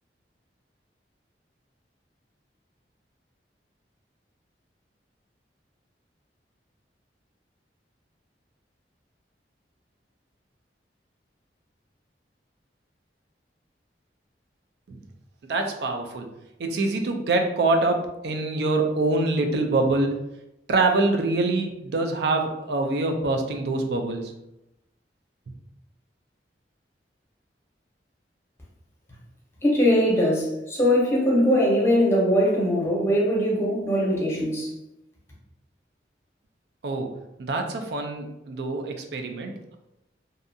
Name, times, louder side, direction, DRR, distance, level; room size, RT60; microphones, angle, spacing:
voice 1, 15.5-16.3 16.6-20.2 20.7-24.3 36.8-37.1 37.4-39.8, right 2 dB, 65° right, 4 dB, 0.4 m, -25 dB
voice 2, 29.6-34.7, equal, 15° left, -4 dB, 0.7 m, -21 dB
2.6 x 2.3 x 2.6 m, 0.88 s
head